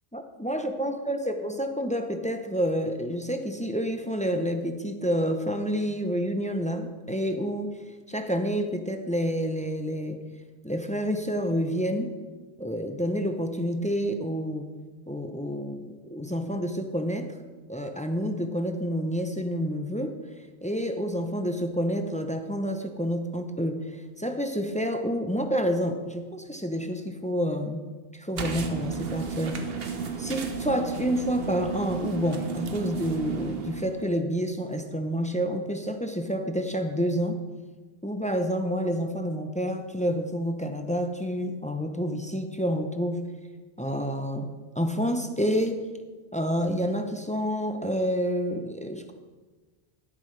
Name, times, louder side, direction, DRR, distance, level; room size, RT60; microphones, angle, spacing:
voice 1, 0.1-7.8 8.1-10.2 10.6-12.1 12.6-14.7 15.1-17.3 17.7-20.1 20.6-23.8 24.2-27.8 28.1-29.6 30.2-37.4 38.0-43.2 43.8-44.5 44.8-45.8 46.3-49.1, equal, 10° left, 6 dB, 0.5 m, -28 dB
sound 1, 28.4-34.1, right 5 dB, 65° right, 1.1 m, -33 dB
12.5 x 10.5 x 3.3 m, 1.4 s
omnidirectional pair, 1.1 m